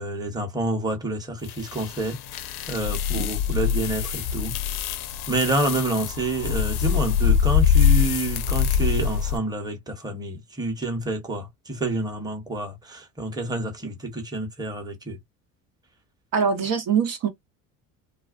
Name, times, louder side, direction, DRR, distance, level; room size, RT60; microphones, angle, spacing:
voice 1, 0.0-4.6 5.3-15.2, right 2 dB, 10° right, 0.9 m, -28 dB
sound 1, 1.5-9.4, left 8 dB, 60° left, 0.6 m, -24 dB
voice 2, 16.3-17.3, right 6 dB, 50° right, 0.8 m, -23 dB
2.3 x 2.2 x 2.4 m
hypercardioid pair, 75°, 45 cm